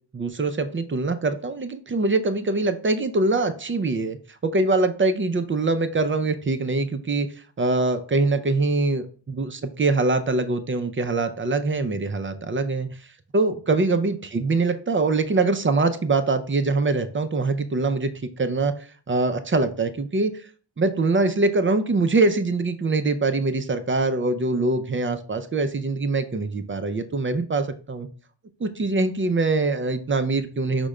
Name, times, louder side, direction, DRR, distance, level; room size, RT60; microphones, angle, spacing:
voice 1, 0.1-4.2 4.4-7.3 7.6-12.9 13.3-18.1 18.4-18.7 19.1-20.3 20.8-28.1 28.6-30.9, right 3 dB, 30° right, 9 dB, 0.4 m, -23 dB
5.0 x 2.2 x 4.7 m, 0.41 s
wide cardioid pair, 100°, 46 cm